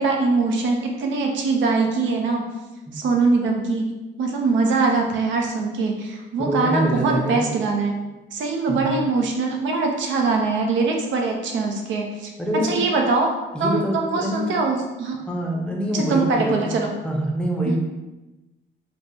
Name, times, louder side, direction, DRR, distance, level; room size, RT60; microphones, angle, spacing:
voice 1, 0.0-2.4 2.9-3.9 4.2-7.9 8.3-12.3 12.6-13.3 13.6-15.2 15.9-16.9 17.6-17.8, right 3 dB, 70° right, 1 dB, 0.5 m, -22 dB
voice 2, 6.5-7.4 8.7-8.9 12.4-12.8 13.5-14.6 15.3-16.7 17.0-17.8, equal, 5° left, -2 dB, 0.6 m, -25 dB
3.3 x 2.0 x 2.6 m, 1.1 s
cardioid pair, 90°, 20 cm